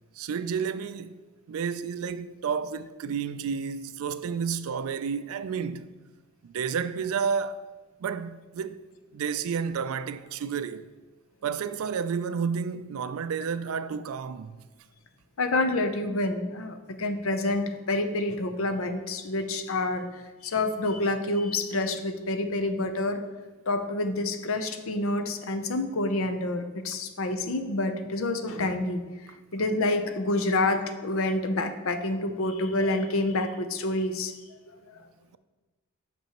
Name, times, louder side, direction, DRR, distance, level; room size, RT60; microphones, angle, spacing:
voice 1, 0.2-1.1 1.5-5.9 6.4-7.7 8.0-8.8 9.1-10.8 11.4-14.6, right 6 dB, 70° right, 0.3 m, -31 dB
voice 2, 15.4-23.2 23.7-29.0 29.5-34.3 34.7-35.0, left 2 dB, 65° left, 0.6 m, -28 dB
8.4 x 6.0 x 3.0 m
head